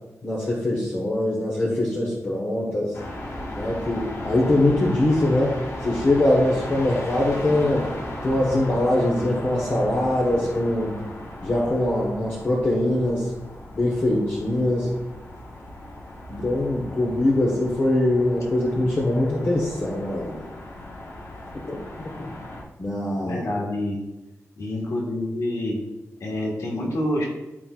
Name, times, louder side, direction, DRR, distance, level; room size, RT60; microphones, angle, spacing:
voice 1, 0.2-2.9 3.5-7.9 8.2-10.9 11.4-13.3 13.7-14.9 16.3-20.4 22.2-22.3 22.8-23.4, left 1 dB, 40° left, -4 dB, 1.4 m, -22 dB
sound 1, 2.9-22.6, left 1 dB, 60° left, 1.5 m, -36 dB
voice 2, 23.2-24.0 24.6-25.8 26.2-27.2, left 1 dB, 75° left, -2 dB, 1.8 m, -27 dB
13.0 x 4.6 x 2.5 m, 1.0 s
wide cardioid pair, 140°, 5 cm